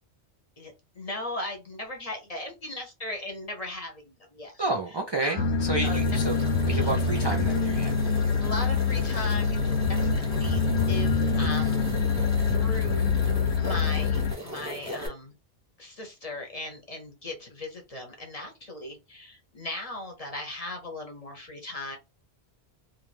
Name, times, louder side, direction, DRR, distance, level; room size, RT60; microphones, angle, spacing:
voice 1, 0.6-4.6 5.2-5.5 5.8-6.0 6.3-7.0 8.4-11.8 12.5-13.1 13.6-15.3 15.8-22.0, left 1 dB, 40° left, 0.6 m, -38 dB
voice 2, 4.6-6.3 6.7-8.0, right 2 dB, 45° right, 0.3 m, -30 dB
sound 1, 5.4-14.3, left 5 dB, 75° left, 0.8 m, -25 dB
sound 2, 5.8-15.1, equal, 15° right, 0.8 m, -39 dB
2.4 x 2.2 x 3.1 m
omnidirectional pair, 1.1 m